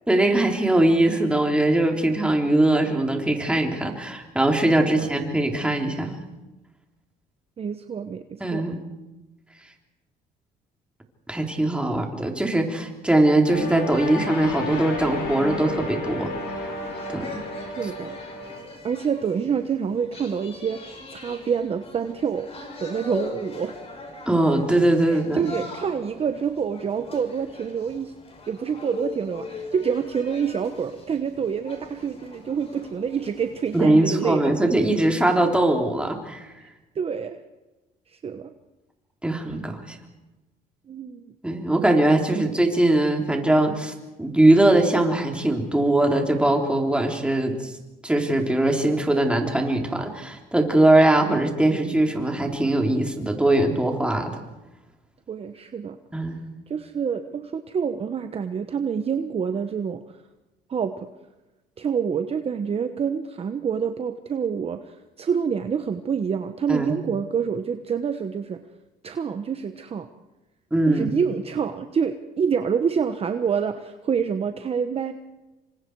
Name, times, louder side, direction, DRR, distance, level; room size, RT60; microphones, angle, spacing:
voice 1, 0.1-6.2 8.4-8.8 11.3-16.3 17.1-17.4 24.3-25.5 33.7-36.5 39.2-40.0 41.4-43.9 44.2-47.7 48.0-54.4 56.1-56.4 66.7-67.0 70.7-71.1, right 1 dB, 5° right, 2 dB, 3.6 m, -21 dB
voice 2, 4.8-5.1 7.6-8.8 17.8-18.1 18.8-22.5 22.8-23.7 25.1-28.1 28.5-34.5 36.6-36.7 36.9-37.4 38.1-38.5 40.9-41.2 55.3-56.0 56.7-60.0 60.7-61.1 61.8-68.6 69.0-70.1 70.9-75.1, right 6 dB, 35° right, 8 dB, 1.1 m, -27 dB
sound 1, 13.5-18.6, left 2 dB, 80° left, 8.0 m, -32 dB
sound 2, 15.3-33.8, left 3 dB, 35° left, 5.9 m, -41 dB
28.0 x 24.5 x 4.8 m, 1.1 s
cardioid pair, 110°, 17 cm